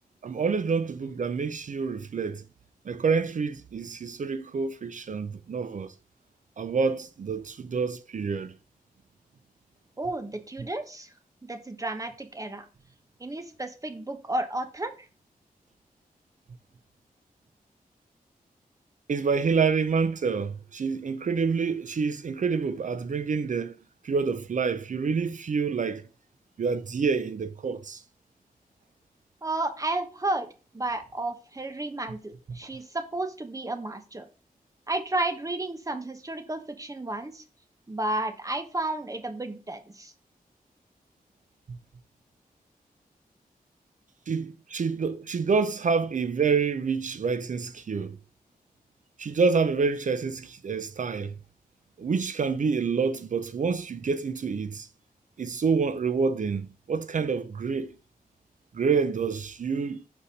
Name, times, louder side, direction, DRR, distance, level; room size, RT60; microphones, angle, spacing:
voice 1, 0.2-2.4 2.9-5.9 6.6-8.5 19.1-23.7 24.0-26.1 26.6-28.0 32.5-32.6 41.7-41.8 44.3-48.2 49.2-51.3 52.0-54.9 55.4-58.0 58.7-60.0, right 5 dB, 55° right, 0.6 m, -27 dB
voice 2, 10.0-11.1 11.4-12.7 13.2-14.9 29.4-30.5 30.7-34.3 34.9-37.4 37.9-40.1, right 2 dB, 20° right, 1.0 m, -32 dB
5.4 x 4.2 x 5.2 m
wide cardioid pair, 90°, 15 cm